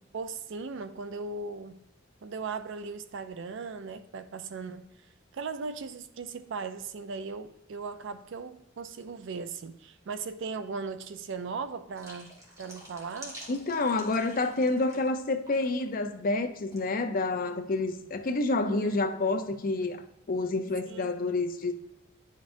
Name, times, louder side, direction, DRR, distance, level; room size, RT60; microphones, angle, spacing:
voice 1, 0.1-1.8 2.2-4.8 5.3-13.4 18.7-18.9 20.8-21.1, right 4 dB, 65° right, 0.4 m, -38 dB
sound 1, 11.9-15.2 15.5-15.8 16.7-16.9, equal, 15° right, 1.5 m, -48 dB
voice 2, 13.5-21.7, left 2 dB, 45° left, 0.6 m, -28 dB
10.0 x 5.2 x 2.6 m
head